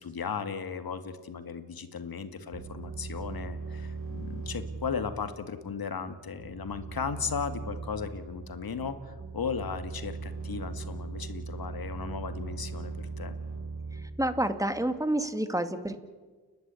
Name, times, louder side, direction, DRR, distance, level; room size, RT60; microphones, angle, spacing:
voice 1, 0.0-13.3, left 6 dB, 60° left, 9 dB, 2.2 m, -36 dB
sound 1, 2.5-15.0, right 4 dB, 35° right, 6.6 m, -39 dB
voice 2, 14.2-16.0, right 1 dB, 10° right, 9 dB, 2.3 m, -28 dB
30.0 x 11.5 x 8.5 m, 1.4 s
cardioid pair, 50°, 40 cm